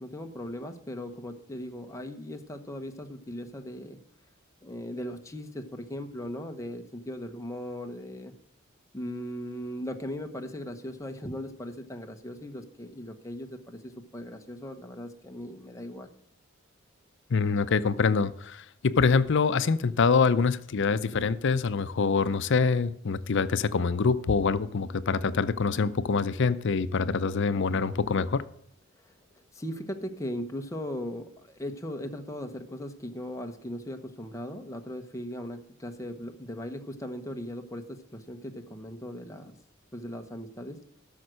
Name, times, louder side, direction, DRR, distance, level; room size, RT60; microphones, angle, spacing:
voice 1, 0.0-4.0 4.6-8.3 8.9-16.1 29.5-39.5 39.9-40.8, left 1 dB, 15° left, 1.0 m, -38 dB
voice 2, 17.3-28.5, left 5 dB, 60° left, 0.6 m, -25 dB
12.5 x 6.4 x 6.3 m
head